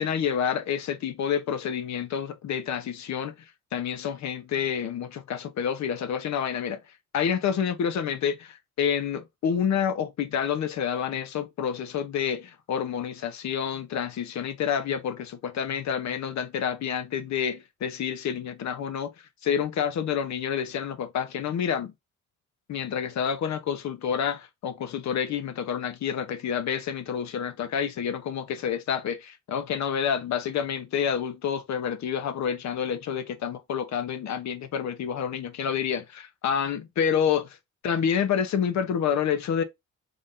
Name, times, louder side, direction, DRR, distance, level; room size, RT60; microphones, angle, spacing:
voice 1, 0.0-3.3 3.7-6.8 7.1-19.1 19.4-21.9 22.7-37.6 37.8-39.6, left 8 dB, 65° left, 1.0 m, -28 dB
3.6 x 3.6 x 2.6 m
cardioid pair, 90°, 30 cm